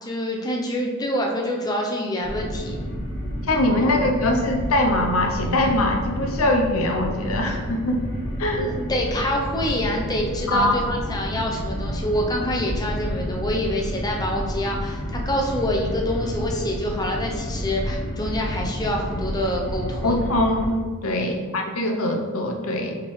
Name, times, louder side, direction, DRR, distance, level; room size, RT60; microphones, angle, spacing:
voice 1, 0.0-2.7 3.8-4.0 8.5-20.2 21.1-21.4, left 1 dB, 20° left, 0 dB, 0.7 m, -26 dB
sound 1, 2.2-20.7, equal, 60° left, 1.6 m, -30 dB
voice 2, 3.5-8.0 8.4-8.7 10.5-10.8 20.0-23.0, left 1 dB, 85° left, 3 dB, 0.7 m, -22 dB
5.7 x 5.1 x 3.2 m, 1.5 s
head